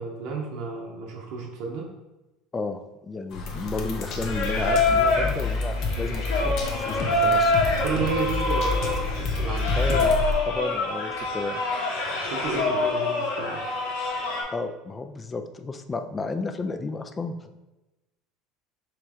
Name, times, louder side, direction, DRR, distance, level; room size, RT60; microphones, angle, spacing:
voice 1, 0.0-1.9 7.6-9.8 12.0-13.8, right 5 dB, 60° right, -1 dB, 0.7 m, -32 dB
voice 2, 2.5-6.6 6.9-7.5 9.7-10.2 10.4-11.6 14.5-17.5, left 3 dB, 15° left, 8 dB, 0.3 m, -32 dB
sound 1, 3.3-10.3, left 3 dB, 45° left, 0.7 m, -29 dB
Singing, 4.2-14.4, left 2 dB, 90° left, 1.2 m, -26 dB
3.5 x 3.1 x 4.8 m, 1.0 s
cardioid pair, 155°, 0 cm